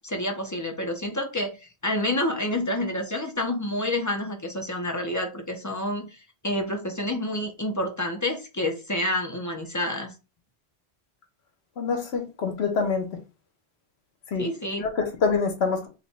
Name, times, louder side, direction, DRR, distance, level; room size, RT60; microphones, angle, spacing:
voice 1, 0.0-10.1 14.4-14.8, left 1 dB, 25° left, 0.4 m, -28 dB
voice 2, 11.8-13.0 14.3-14.5 14.8-15.9, left 5 dB, 75° left, 1.1 m, -25 dB
3.0 x 2.2 x 4.0 m
omnidirectional pair, 1.1 m